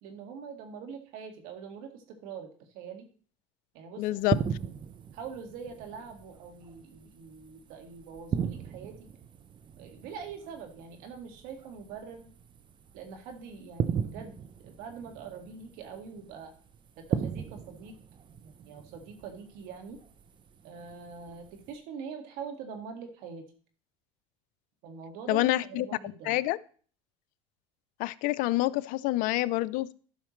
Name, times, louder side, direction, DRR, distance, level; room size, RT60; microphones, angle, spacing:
voice 1, 0.0-2.5 2.7-3.1 3.7-4.2 5.1-8.9 9.8-12.3 12.9-16.5 17.0-18.0 18.4-20.0 20.6-23.4 24.8-26.4, right 6 dB, 65° right, 5 dB, 1.9 m, -43 dB
voice 2, 4.0-4.4 25.3-26.6 28.0-29.9, left 17 dB, 60° left, 17 dB, 0.5 m, -27 dB
sound 1, 4.2-21.8, right 7 dB, 30° right, 0.8 m, -38 dB
12.0 x 5.7 x 3.1 m, 0.43 s
supercardioid pair, 105°, 15 cm